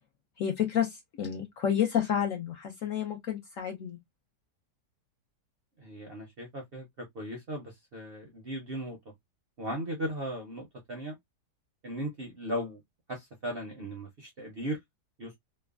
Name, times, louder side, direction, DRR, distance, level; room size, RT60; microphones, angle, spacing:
voice 1, 0.4-4.0, left 9 dB, 70° left, 0.8 m, -30 dB
voice 2, 5.8-6.9 7.1-9.0 9.6-11.1 11.8-12.8 13.1-14.8 15.2-15.4, equal, 55° right, 0.6 m, -37 dB
3.1 x 2.1 x 2.3 m
omnidirectional pair, 1.8 m